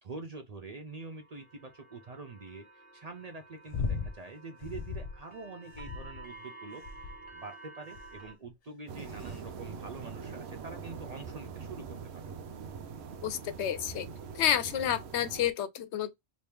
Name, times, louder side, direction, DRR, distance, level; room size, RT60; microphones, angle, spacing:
voice 1, 0.0-12.3, right 3 dB, 50° right, 0.5 m, -45 dB
sound 1, 0.9-8.3, right 3 dB, 10° left, 1.1 m, -52 dB
sound 2, 3.7-4.2 4.6-5.2 5.7-6.3 6.8-7.3 7.9-8.3 9.0-9.4 10.3-10.4, left 5 dB, 55° left, 0.4 m, -37 dB
sound 3, 8.9-15.5, right 6 dB, 75° right, 0.8 m, -43 dB
voice 2, 13.2-14.1 14.3-16.1, left 10 dB, 75° left, 0.9 m, -30 dB
3.0 x 2.7 x 3.4 m
omnidirectional pair, 1.1 m